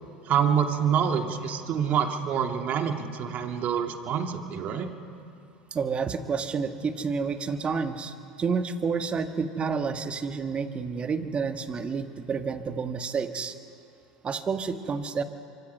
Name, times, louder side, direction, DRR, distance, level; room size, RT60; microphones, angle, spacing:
voice 1, 0.3-4.9, right 8 dB, 50° right, 5 dB, 2.1 m, -26 dB
voice 2, 5.7-13.5 14.2-15.2, right 5 dB, 30° right, 7 dB, 1.6 m, -29 dB
25.0 x 24.0 x 5.6 m, 2.7 s
hypercardioid pair, 85°, 4 cm